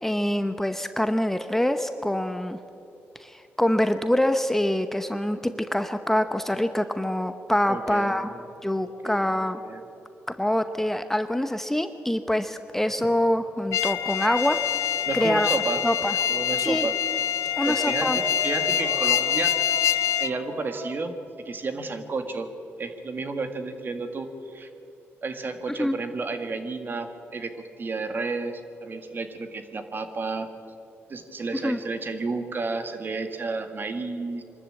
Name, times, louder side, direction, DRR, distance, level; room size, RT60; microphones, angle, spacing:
voice 1, 0.0-2.6 3.2-8.3 8.6-9.6 10.4-14.6 14.9-15.5 15.8-16.1 16.6-16.9 17.6-18.2 25.8-25.9 31.6-31.8, left 1 dB, 5° left, 9 dB, 0.8 m, -25 dB
voice 2, 7.7-8.4 9.0-9.8 15.0-15.9 16.3-16.9 17.7-21.1 21.5-22.5 22.8-24.7 25.2-30.5 31.1-34.4, right 3 dB, 45° right, 8 dB, 1.8 m, -32 dB
sound 1, 12.9-14.1 14.5-22.2, equal, 75° right, 4.1 m, -40 dB
sound 2, 13.7-20.3, left 10 dB, 85° left, 0.5 m, -25 dB
23.5 x 13.0 x 8.7 m, 2.7 s
cardioid pair, 90°, 5 cm